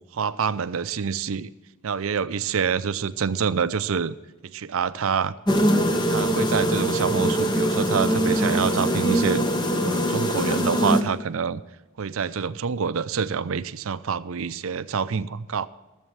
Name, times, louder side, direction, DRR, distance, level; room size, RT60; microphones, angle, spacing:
voice 1, 0.0-1.5 1.8-4.2 4.4-5.4 6.1-9.4 9.8-11.6 12.0-15.7, right 6 dB, 70° right, 15 dB, 0.5 m, -26 dB
sound 1, 5.5-11.0, equal, 20° left, 0.8 m, -22 dB
14.5 x 7.5 x 7.3 m, 1.1 s
head